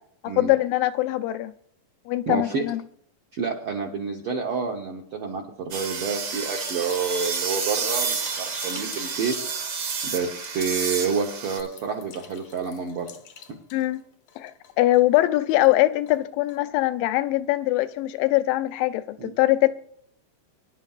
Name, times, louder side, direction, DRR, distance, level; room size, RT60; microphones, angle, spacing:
voice 1, 0.2-1.5 2.1-2.8 13.7-14.0 14.4-19.7, left 16 dB, 85° left, 2.4 m, -22 dB
voice 2, 2.3-2.6 3.3-9.3 10.0-13.1 19.2-19.3, right 5 dB, 75° right, 1.2 m, -28 dB
sound 1, 5.7-11.6, right 5 dB, 55° right, 1.5 m, -30 dB
sound 2, 6.3-14.0 14.3-15.8 16.1-16.2 16.5-16.6, left 8 dB, 65° left, 1.7 m, -46 dB
22.5 x 10.5 x 2.4 m
omnidirectional pair, 4.0 m